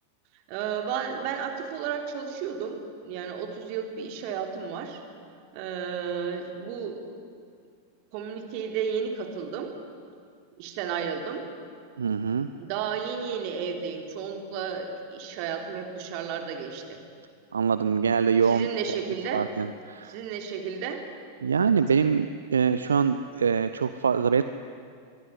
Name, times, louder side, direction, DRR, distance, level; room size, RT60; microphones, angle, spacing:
voice 1, 0.5-5.0 5.5-7.2 8.1-9.7 10.6-11.4 12.6-17.0 18.5-19.4 20.1-21.0, right 7 dB, 45° right, 4 dB, 3.4 m, -33 dB
voice 2, 12.0-12.5 17.5-19.0 19.3-20.2 21.4-24.4, right 6 dB, 70° right, 12 dB, 0.7 m, -24 dB
25.0 x 22.5 x 9.7 m, 2.2 s
figure-of-eight pair, 90°, 0 cm